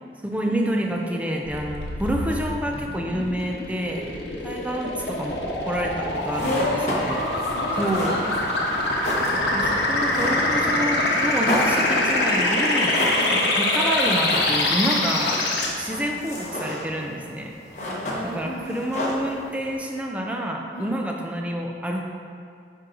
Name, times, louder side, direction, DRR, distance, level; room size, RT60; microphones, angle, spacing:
voice 1, 0.2-4.0 4.4-7.2 7.8-8.1 8.7-8.8 9.5-13.0 13.3-15.4 15.7-17.5 18.2-22.1, right 1 dB, 10° right, 0 dB, 0.5 m, -28 dB
sound 1, 1.5-15.7, left 2 dB, 75° left, 1.0 m, -24 dB
voice 2, 5.0-5.4 6.4-8.8 12.0-12.2 13.0-13.4 15.8-16.1 17.8-18.9 20.7-20.9, left 1 dB, 60° left, -3 dB, 1.2 m, -32 dB
sound 2, 6.2-19.8, left 1 dB, 40° left, 1.2 m, -33 dB
9.4 x 4.5 x 3.9 m, 2.4 s
head